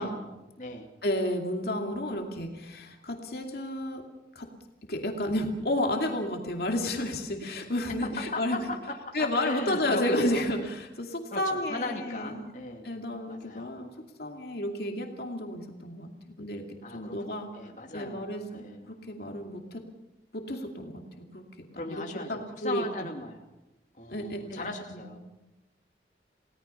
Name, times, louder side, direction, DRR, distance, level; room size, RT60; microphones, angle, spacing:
voice 1, 0.0-0.9 7.9-10.4 11.3-12.9 13.3-13.8 16.8-18.9 21.7-23.4 24.0-25.2, left 2 dB, 45° left, 1 dB, 2.6 m, -38 dB
voice 2, 1.0-4.0 4.4-4.5 4.9-8.7 9.1-12.4 12.8-13.9 14.2-16.1 16.4-16.6 16.9-17.5 17.9-19.8 20.3-21.0 21.3-21.4 21.7-22.0 22.3-23.1 24.1-25.1, left 1 dB, 65° left, 2 dB, 2.5 m, -31 dB
30.0 x 18.0 x 5.7 m, 0.98 s
head